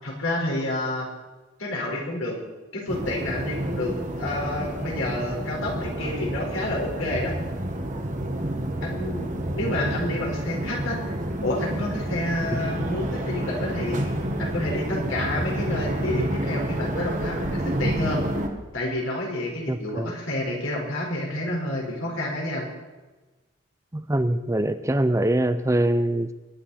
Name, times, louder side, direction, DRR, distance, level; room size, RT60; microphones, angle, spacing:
voice 1, 0.0-1.1 1.6-2.4 2.7-7.3 8.8-11.1 11.4-18.2 18.7-22.7, left 1 dB, 85° left, -2 dB, 4.6 m, -29 dB
sound 1, 2.9-18.5, right 1 dB, 35° right, 1.4 m, -29 dB
voice 2, 19.7-20.1 23.9-26.3, right 1 dB, 15° right, 12 dB, 0.5 m, -23 dB
23.0 x 10.0 x 4.2 m, 1.2 s
head